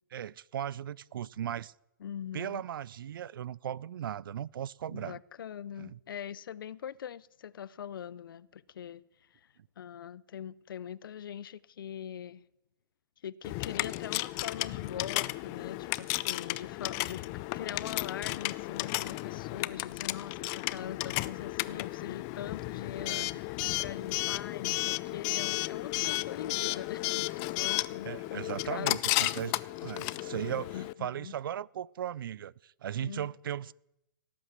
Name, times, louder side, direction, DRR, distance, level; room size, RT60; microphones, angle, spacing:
voice 1, 0.1-1.7 2.3-5.2 5.8-6.0 23.0-23.3 28.0-33.7, right 10 dB, 70° right, 0.4 m, -37 dB
voice 2, 2.0-2.6 4.9-9.0 9.3-12.4 13.2-17.3 17.5-28.9 30.7-31.3 33.0-33.3, left 9 dB, 70° left, 0.6 m, -42 dB
Coin (dropping) / Alarm, 13.4-30.9, left 21 dB, 30° left, 0.4 m, -33 dB
17.5 x 8.6 x 7.4 m
hypercardioid pair, 140°, 12 cm